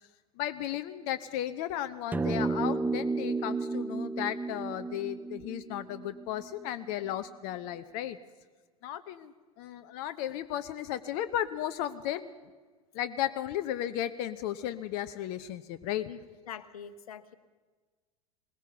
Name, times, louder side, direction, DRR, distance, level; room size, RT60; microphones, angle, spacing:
voice 1, 0.4-8.2 8.8-12.3 12.9-16.1, left 12 dB, 50° left, 11 dB, 0.9 m, -35 dB
sound 1, 2.1-6.7, right 3 dB, 10° right, 0.7 m, -32 dB
voice 2, 16.1-17.3, left 8 dB, 70° left, 12 dB, 1.3 m, -44 dB
20.5 x 20.0 x 6.8 m, 1.4 s
figure-of-eight pair, 80°, 19 cm